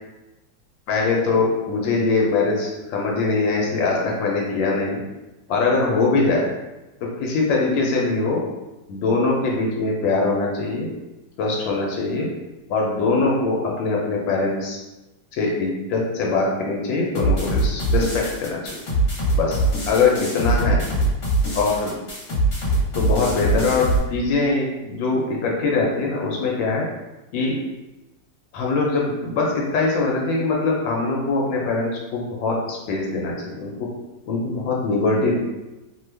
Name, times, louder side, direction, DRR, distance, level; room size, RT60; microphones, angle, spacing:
voice 1, 0.9-5.0 5.5-6.4 7.2-8.4 8.9-10.9 11.4-12.3 12.7-14.8 15.3-18.7 19.4-19.6 19.9-20.8 21.5-22.0 22.9-26.8 27.3-27.6 28.5-33.7 34.3-35.4, left 3 dB, 85° left, -2 dB, 1.3 m, -22 dB
sound 1, 17.1-24.0, right 2 dB, 55° left, 1.3 m, -22 dB
3.0 x 2.2 x 3.2 m, 1.1 s
omnidirectional pair, 2.0 m